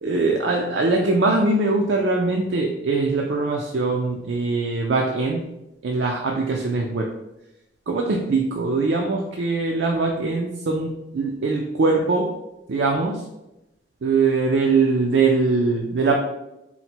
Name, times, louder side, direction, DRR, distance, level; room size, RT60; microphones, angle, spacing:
voice 1, 0.0-5.4 5.8-7.1 7.9-12.3 12.7-13.2 14.0-16.2, right 3 dB, 70° right, 1 dB, 0.4 m, -22 dB
4.1 x 2.1 x 4.3 m, 0.91 s
head